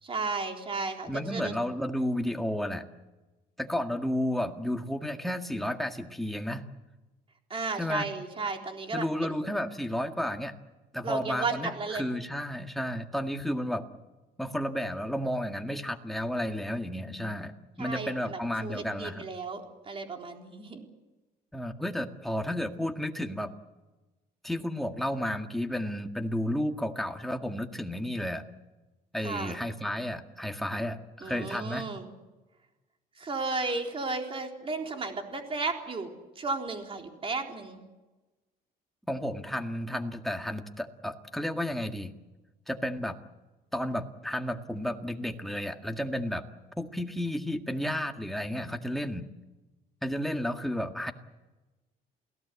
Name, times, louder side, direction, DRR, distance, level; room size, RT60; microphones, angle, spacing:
voice 1, 0.0-1.5 7.5-9.4 11.0-12.1 17.8-20.8 29.2-29.6 31.2-32.1 33.2-36.1 36.4-37.8, right 3 dB, 35° right, 3 dB, 4.0 m, -34 dB
voice 2, 1.1-2.9 3.6-6.7 7.8-8.1 8.9-10.5 10.9-13.8 14.4-19.2 21.5-23.5 24.4-28.4 29.1-31.9 39.1-42.1 42.7-43.2 43.7-46.4 46.8-49.3 50.0-51.1, equal, ahead, 4 dB, 1.9 m, -32 dB
28.5 x 17.5 x 8.4 m, 1.1 s
cardioid pair, 110°, 17 cm